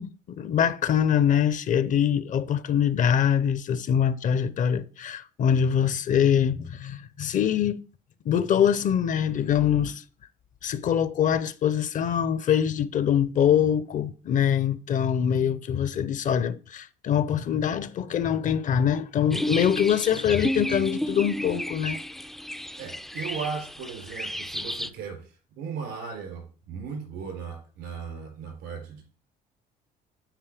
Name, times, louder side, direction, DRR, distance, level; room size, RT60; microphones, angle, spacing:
voice 1, 0.0-7.8 8.3-10.0 10.6-22.0, left 8 dB, 50° left, 0.6 m, -24 dB
sound 1, 19.3-24.9, equal, ahead, 0.3 m, -32 dB
voice 2, 22.8-29.0, right 6 dB, 85° right, 3.6 m, -37 dB
9.1 x 4.3 x 3.4 m
cardioid pair, 110°, 17 cm